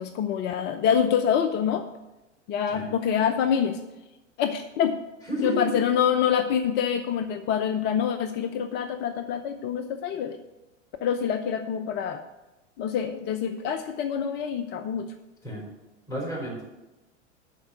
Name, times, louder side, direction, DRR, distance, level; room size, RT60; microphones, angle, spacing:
voice 1, 0.0-1.8 2.5-3.8 4.4-5.0 5.4-10.4 11.0-12.2 12.8-15.1, left 8 dB, 30° left, 9 dB, 0.6 m, -26 dB
voice 2, 5.3-5.7 15.4-15.6 16.1-16.6, right 1 dB, 10° left, -3 dB, 4.4 m, -31 dB
11.5 x 4.6 x 7.8 m, 1.0 s
figure-of-eight pair, 95°, 36 cm